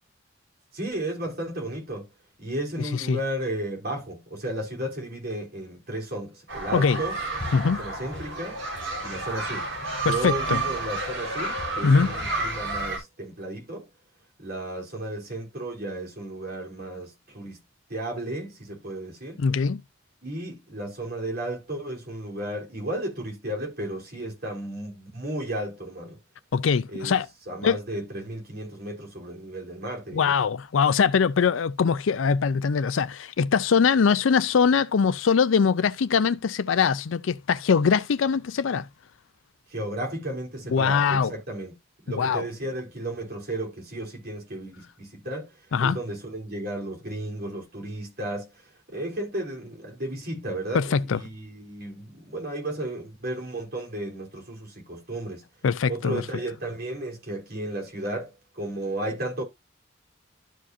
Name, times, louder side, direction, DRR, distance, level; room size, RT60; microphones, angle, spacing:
voice 1, 0.7-2.1 2.4-7.2 7.6-8.6 9.0-9.7 10.0-13.9 14.4-17.6 17.9-19.4 20.2-26.2 26.9-27.2 27.5-30.4 39.7-41.8 42.0-45.5 45.8-48.5 48.9-55.4 55.9-59.4, right 1 dB, 50° right, 3.5 m, -34 dB
sound 1, 6.5-13.0, right 3 dB, 70° right, 3.9 m, -31 dB
voice 2, 10.0-10.6 11.8-12.1 19.4-19.8 26.5-27.3 27.6-27.8 30.1-38.9 40.7-41.3 42.1-42.4 45.7-46.0 50.7-51.2 55.6-56.2, left 6 dB, 80° left, 0.4 m, -22 dB
12.5 x 5.0 x 2.6 m
head